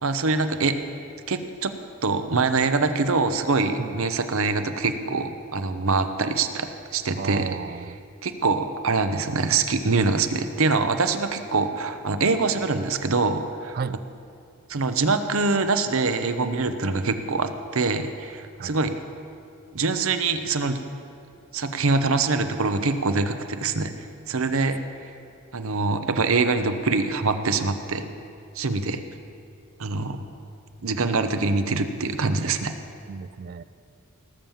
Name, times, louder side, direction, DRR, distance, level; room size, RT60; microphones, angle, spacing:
voice 1, 0.0-0.8 1.3-1.7 2.0-6.7 6.9-7.5 8.2-13.8 14.7-18.9 19.7-20.8 21.5-23.9 24.3-24.8 25.5-28.1 28.6-29.0 29.8-30.2 30.8-32.7, right 3 dB, 65° right, 9 dB, 0.8 m, -24 dB
voice 2, 7.1-8.0 13.7-14.0 18.6-19.0 33.1-33.6, right 5 dB, 40° right, 16 dB, 0.3 m, -33 dB
18.5 x 7.3 x 7.1 m, 2.5 s
head